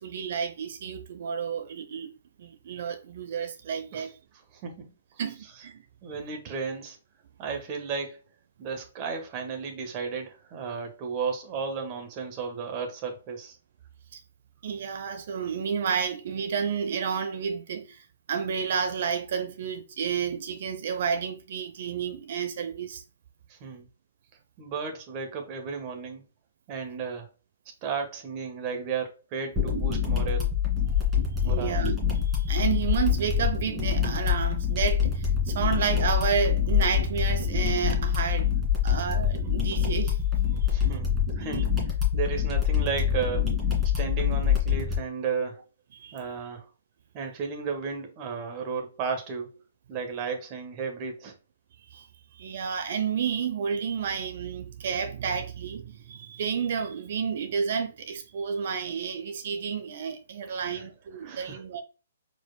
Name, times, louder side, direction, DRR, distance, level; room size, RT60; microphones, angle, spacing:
voice 1, 0.0-2.1 2.4-4.1 5.2-5.8 14.1-14.2 14.6-23.0 31.4-31.9 32.3-38.6 38.8-40.2 40.6-41.0 46.0-46.2 51.9-52.1 52.3-61.8, right 6 dB, 55° right, 0.7 m, -31 dB
voice 2, 6.0-7.0 7.4-8.2 8.6-13.6 23.5-23.9 24.6-26.2 26.7-27.3 27.8-30.5 31.4-31.8 40.7-41.1 41.4-41.7 42.1-43.5 44.0-45.6 46.1-46.7 47.1-49.5 49.9-51.3 60.6-60.9 61.2-61.6, right 5 dB, 30° right, 1.3 m, -33 dB
sound 1, 29.6-45.0, left 8 dB, 15° right, 2.1 m, -25 dB
4.7 x 4.3 x 2.2 m
figure-of-eight pair, 125°, 0 cm